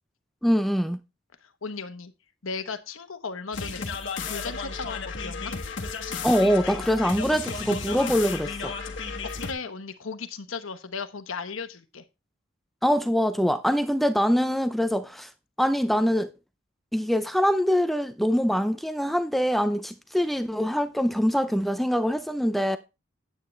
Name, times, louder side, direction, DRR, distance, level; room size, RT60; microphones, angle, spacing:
voice 1, 0.4-1.0 6.2-8.7 12.8-15.3 15.6-16.3 16.9-22.8, equal, ahead, 0.4 m, -24 dB
voice 2, 1.4-2.1 2.4-5.5 9.2-12.0, left 5 dB, 75° left, 1.0 m, -36 dB
sound 1, 3.5-9.5, left 5 dB, 60° left, 1.4 m, -33 dB
9.4 x 8.4 x 3.2 m
head